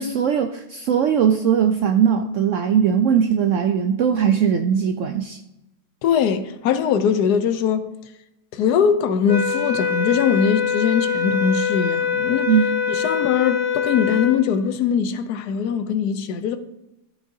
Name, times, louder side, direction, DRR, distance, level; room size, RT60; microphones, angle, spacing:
voice 1, 0.0-5.4 12.5-12.7, right 8 dB, 75° right, 0.7 m, -19 dB
voice 2, 6.0-7.9 8.5-12.5 12.9-16.6, left 7 dB, 75° left, 1.2 m, -21 dB
sound 1, 9.3-14.4, left 7 dB, 50° left, 0.9 m, -23 dB
13.0 x 6.6 x 2.7 m
omnidirectional pair, 1.8 m